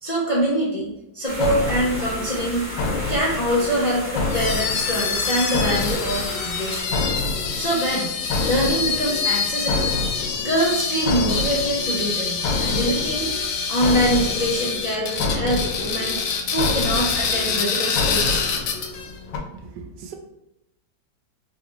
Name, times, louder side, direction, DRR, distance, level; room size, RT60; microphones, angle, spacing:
voice 1, 0.0-2.7 3.1-7.0 7.6-8.1 8.4-9.9 10.4-13.4 13.7-16.2 16.5-18.5, equal, 50° left, 0.5 m, -24 dB
sound 1, 1.2-6.8, right 1 dB, 20° right, 1.1 m, -34 dB
sound 2, 1.4-19.4, left 3 dB, 90° left, 1.3 m, -29 dB
sound 3, 4.3-19.1, left 5 dB, 70° left, 0.8 m, -26 dB
voice 2, 19.5-20.1, right 5 dB, 75° right, 1.1 m, -39 dB
3.6 x 3.2 x 3.0 m
omnidirectional pair, 1.8 m